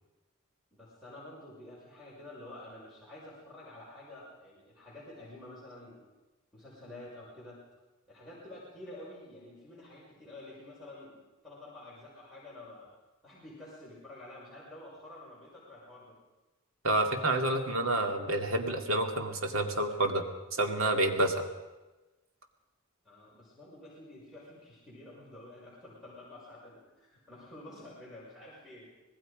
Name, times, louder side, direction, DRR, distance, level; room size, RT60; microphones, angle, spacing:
voice 1, 0.7-6.0 6.5-7.6 8.1-12.9 13.2-16.2 23.0-28.9, left 1 dB, ahead, -7 dB, 6.2 m, -49 dB
voice 2, 16.8-20.2 20.5-21.5, right 2 dB, 75° right, 4 dB, 2.4 m, -28 dB
25.5 x 19.5 x 5.2 m, 1.1 s
head